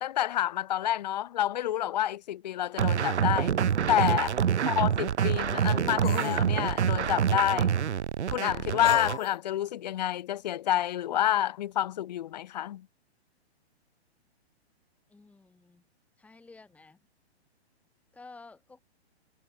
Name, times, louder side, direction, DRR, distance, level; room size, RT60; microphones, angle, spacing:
voice 1, 0.0-3.5 3.9-4.4 4.7-7.7 8.3-12.9, left 12 dB, 40° left, 2.0 m, -28 dB
sound 1, 2.8-9.2, right 8 dB, 90° right, 1.6 m, -26 dB
sound 2, 3.7-3.8 6.0-6.4 8.8-9.4, left 10 dB, 55° left, 0.9 m, -34 dB
voice 2, 15.1-15.8 16.2-17.0 18.1-18.8, left 3 dB, 5° left, 5.9 m, -52 dB
hypercardioid pair, 170°, 33 cm